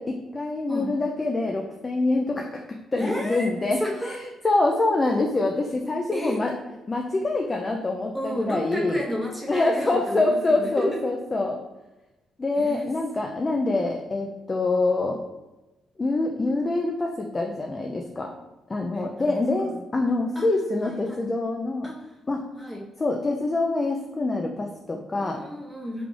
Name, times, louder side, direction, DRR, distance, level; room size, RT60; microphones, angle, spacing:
voice 1, 0.0-2.6 2.9-4.2 4.4-6.5 6.9-9.0 9.5-11.6 12.4-15.2 16.0-18.3 18.7-21.9 22.3-22.5 23.0-25.4, left 2 dB, 25° left, 2 dB, 0.3 m, -25 dB
voice 2, 0.7-1.1 3.0-3.5 3.8-4.4 6.1-6.4 8.1-10.9 12.6-12.9 18.9-19.4 20.4-20.5 20.8-21.2 21.8-22.0 22.6-22.9 25.1-26.1, equal, 5° left, -3 dB, 0.9 m, -32 dB
3.6 x 2.4 x 3.1 m, 1.0 s
cardioid pair, 90°, 0 cm